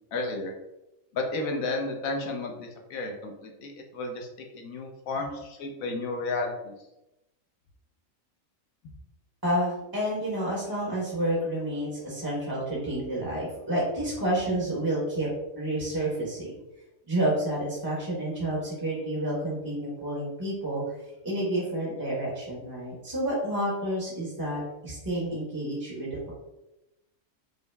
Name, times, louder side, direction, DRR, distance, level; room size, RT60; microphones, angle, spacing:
voice 1, 0.1-0.5 1.1-4.3 4.5-6.7, left 2 dB, 75° left, 2 dB, 1.1 m, -32 dB
voice 2, 9.4-15.3 15.5-16.5 17.1-20.8 21.2-26.3, right 1 dB, 20° right, -5 dB, 1.0 m, -29 dB
5.3 x 2.0 x 3.3 m, 0.92 s
omnidirectional pair, 1.4 m